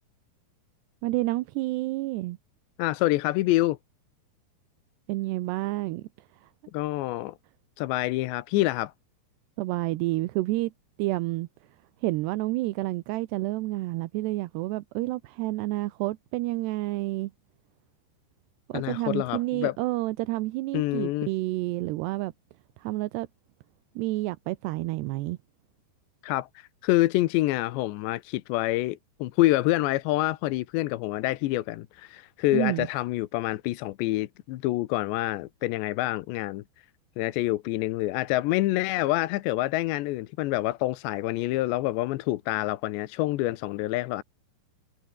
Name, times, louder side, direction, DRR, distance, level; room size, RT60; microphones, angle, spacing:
voice 1, 1.0-2.4 5.1-6.0 9.6-10.7 11.0-11.5 12.0-17.3 18.7-22.3 22.8-23.3 24.0-25.4 32.5-32.9, right 19 dB, 80° right, 2.8 m, -29 dB
voice 2, 2.8-3.8 6.7-7.3 7.8-8.9 18.7-19.8 20.7-21.3 26.2-36.6 37.2-44.2, left 17 dB, 80° left, 3.1 m, -27 dB
omnidirectional pair, 5.1 m